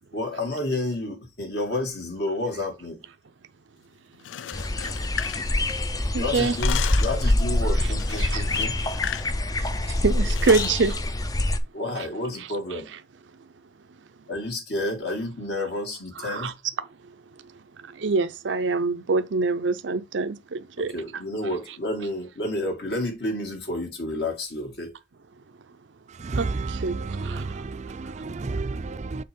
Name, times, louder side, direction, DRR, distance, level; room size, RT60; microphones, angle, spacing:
voice 1, 0.1-3.0 6.1-8.8 11.7-12.9 14.3-16.5 20.8-24.9, left 1 dB, 60° left, 2.3 m, -30 dB
sound 1, 4.1-6.0 6.3-7.2 8.0-9.3 9.6-9.8 10.2-10.8, left 10 dB, 90° left, 0.4 m, -34 dB
sound 2, 4.5-11.6, left 1 dB, 20° left, 0.5 m, -25 dB
voice 2, 5.6-6.6 8.2-8.4 9.6-11.0 16.2-16.5 17.9-20.9 26.4-27.6, right 4 dB, 85° right, 0.6 m, -26 dB
voice 3, 26.1-29.2, right 3 dB, 40° right, 0.4 m, -31 dB
6.7 x 3.4 x 5.3 m
head